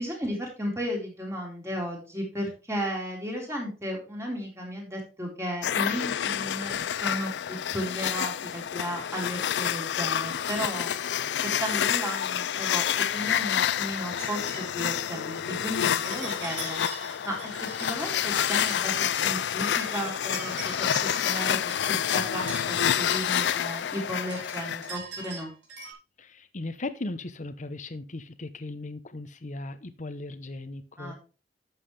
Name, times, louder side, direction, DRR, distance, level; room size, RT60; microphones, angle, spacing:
voice 1, 0.0-17.5 17.8-25.5 31.0-31.2, equal, 15° right, 3.9 m, -34 dB
sound 1, 5.6-25.0, left 9 dB, 75° left, 0.4 m, -28 dB
sound 2, 14.1-25.9, right 4 dB, 80° right, 3.8 m, -43 dB
voice 2, 26.2-31.1, left 2 dB, 45° left, 0.9 m, -37 dB
11.5 x 7.4 x 3.3 m
head